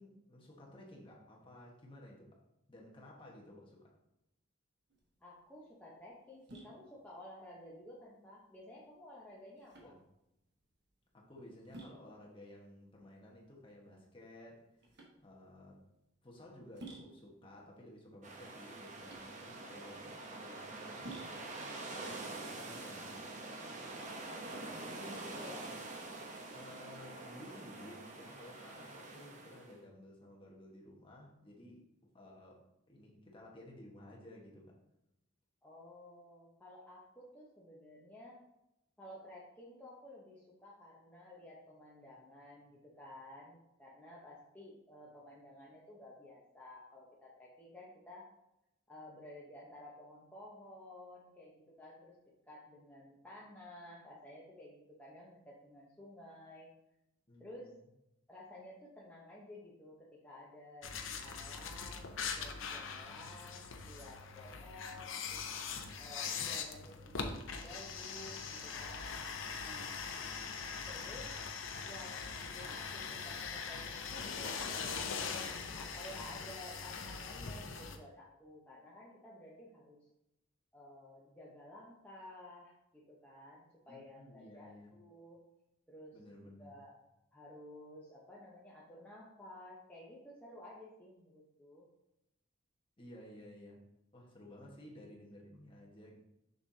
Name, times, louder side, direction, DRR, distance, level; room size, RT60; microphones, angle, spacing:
voice 1, 0.0-2.3 2.7-3.9 9.8-10.0 11.1-15.8 16.2-23.2 23.7-24.1 26.5-31.9 32.1-34.7 57.3-57.8 83.9-85.0 86.1-86.8 93.0-93.8 94.1-96.2, left 1 dB, 25° left, -2 dB, 1.3 m, -55 dB
sound 1, 4.9-23.4, right 2 dB, 55° right, 1.4 m, -56 dB
voice 2, 5.2-9.9 24.0-25.7 35.6-38.4 39.0-48.3 48.9-52.1 52.5-56.7 57.4-57.7 58.3-65.5 66.0-69.1 69.5-69.9 70.9-71.4 71.8-75.5 75.7-80.0 80.7-85.4 85.9-86.2 86.6-87.0 87.3-91.9, left 1 dB, 10° left, -7 dB, 0.9 m, -53 dB
sound 2, 18.2-29.8, right 2 dB, 35° right, 0.9 m, -46 dB
sound 3, 60.8-78.0, left 5 dB, 75° left, 0.7 m, -42 dB
6.6 x 6.5 x 2.8 m, 0.87 s
head